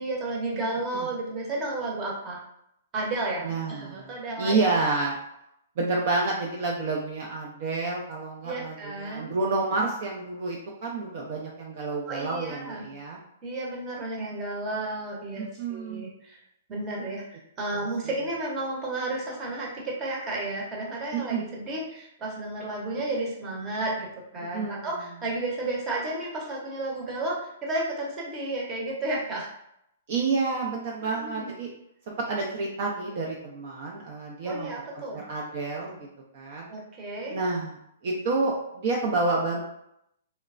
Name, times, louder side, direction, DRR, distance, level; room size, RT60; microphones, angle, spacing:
voice 1, 0.0-2.4 2.9-4.6 8.4-9.3 12.1-12.8 13.4-16.4 16.7-29.5 31.2-31.5 34.4-35.2 36.7-37.4, right 2 dB, 25° right, -3 dB, 0.8 m, -32 dB
voice 2, 3.4-5.2 5.8-13.2 15.4-16.0 21.1-21.4 24.5-25.0 30.1-31.7 32.1-36.1 36.3-36.7 37.3-37.7 38.0-39.6, right 3 dB, 50° right, -2 dB, 0.5 m, -29 dB
3.1 x 2.1 x 2.4 m, 0.78 s
hypercardioid pair, 150°, 0 cm